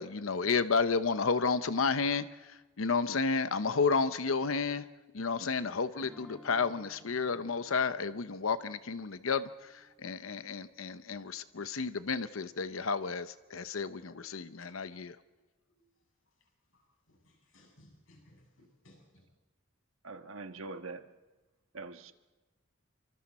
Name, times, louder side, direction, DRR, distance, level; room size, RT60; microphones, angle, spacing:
voice 1, 0.0-4.8 5.1-15.2, left 4 dB, 90° left, 0.8 m, -31 dB
sound 1, 6.0-10.9, equal, 5° left, 5.6 m, -58 dB
voice 2, 14.0-14.7 15.8-15.9 16.7-19.3, left 1 dB, 70° left, 7.9 m, -62 dB
voice 3, 20.0-21.1 21.7-22.1, right 3 dB, 85° right, 1.4 m, -43 dB
29.0 x 25.0 x 4.3 m
head